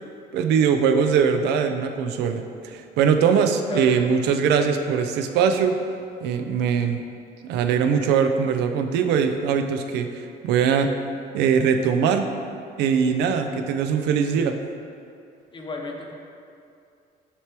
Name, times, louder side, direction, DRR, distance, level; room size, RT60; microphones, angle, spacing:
voice 1, 0.3-5.8 6.2-7.0 7.4-10.9 11.3-12.3 12.8-14.6, right 6 dB, 85° right, 6 dB, 0.5 m, -21 dB
voice 2, 15.5-16.1, left 4 dB, 30° left, 1 dB, 0.8 m, -32 dB
9.8 x 3.3 x 3.0 m, 2.5 s
cardioid pair, 110°, 17 cm